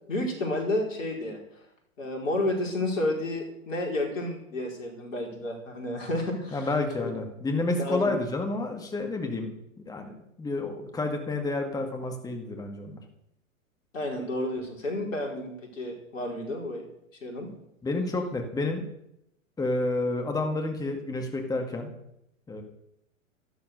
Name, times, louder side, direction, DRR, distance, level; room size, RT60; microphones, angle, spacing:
voice 1, 0.1-1.4 2.0-6.7 7.0-7.1 7.7-8.1 13.9-16.8 17.2-17.5, left 1 dB, 70° left, 2 dB, 4.9 m, -31 dB
voice 2, 6.5-9.5 9.9-13.0 17.8-18.8 19.6-21.9 22.5-22.6, left 2 dB, 10° left, 4 dB, 2.0 m, -30 dB
14.0 x 12.0 x 6.7 m, 0.81 s
figure-of-eight pair, 110°, 40 cm